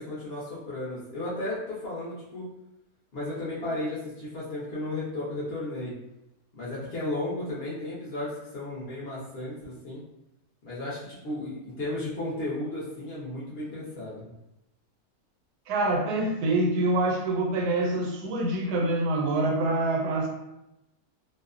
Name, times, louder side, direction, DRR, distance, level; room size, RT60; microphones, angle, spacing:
voice 1, 0.0-2.5 3.1-5.9 6.5-10.0 10.6-14.2, left 1 dB, 60° left, -6 dB, 0.7 m, -34 dB
voice 2, 15.7-20.3, right 2 dB, 90° right, 2 dB, 1.1 m, -26 dB
2.7 x 2.0 x 2.4 m, 0.89 s
omnidirectional pair, 1.7 m